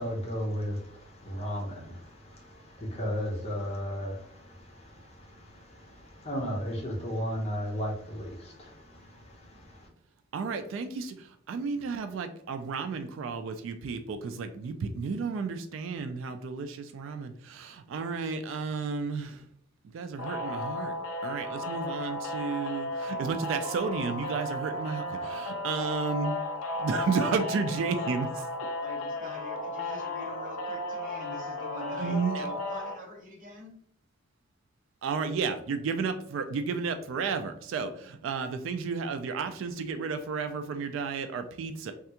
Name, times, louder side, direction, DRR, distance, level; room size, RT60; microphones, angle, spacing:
voice 1, 0.0-9.9, equal, 30° left, 0.7 m, -35 dB
voice 2, 10.3-19.4 19.9-20.9 21.2-26.3 26.8-28.5 31.9-32.4 35.0-41.9, right 5 dB, 70° right, 0.3 m, -32 dB
sound 1, 20.2-32.9, left 1 dB, 85° left, 0.5 m, -34 dB
voice 3, 28.8-33.7, right 1 dB, 40° right, 0.9 m, -44 dB
3.3 x 2.3 x 2.8 m
head